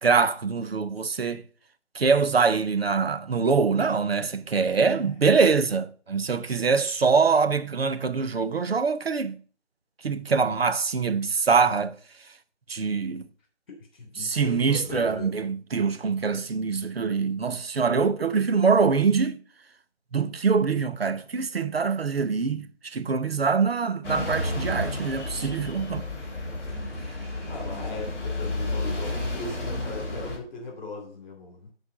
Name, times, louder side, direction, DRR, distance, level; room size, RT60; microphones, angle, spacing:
voice 1, 0.0-1.4 1.9-9.4 10.0-12.0 12.7-13.2 14.2-19.4 20.1-26.1, right 5 dB, 55° right, 0.9 m, -24 dB
voice 2, 13.7-15.3 27.5-31.7, left 3 dB, 40° left, 3.1 m, -38 dB
sound 1, 24.0-30.4, left 2 dB, 5° left, 1.7 m, -31 dB
9.6 x 4.5 x 6.5 m
figure-of-eight pair, 160°, 35 cm